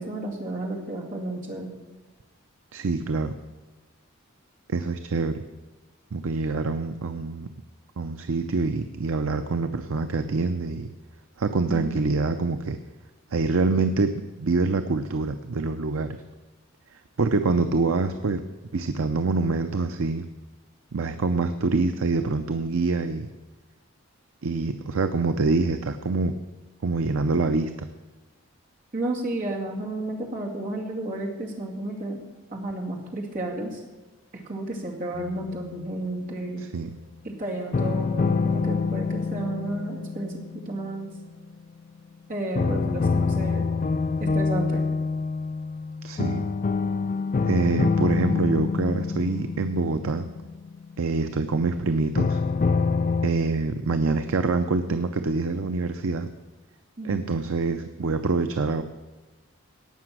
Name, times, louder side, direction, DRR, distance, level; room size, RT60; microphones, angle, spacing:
voice 1, 0.0-1.7 11.7-12.0 28.9-32.2 32.5-33.8 34.3-36.7 37.2-41.1 42.3-43.7 44.2-44.9 57.0-57.2, right 1 dB, 40° right, -1 dB, 2.2 m, -32 dB
voice 2, 2.7-3.4 4.7-5.4 6.1-7.5 8.0-10.9 11.4-12.8 13.3-16.2 16.9-18.4 18.7-20.3 20.9-23.3 24.4-26.3 26.8-27.9 36.7-36.9 46.0-46.4 47.4-50.3 51.0-52.4 53.2-56.3 57.0-58.8, right 3 dB, 70° right, 9 dB, 0.6 m, -25 dB
sound 1, 35.1-36.3 37.7-41.7 42.5-51.4 52.1-53.3, left 4 dB, 35° left, 0.3 m, -26 dB
17.5 x 6.0 x 6.1 m, 1.2 s
head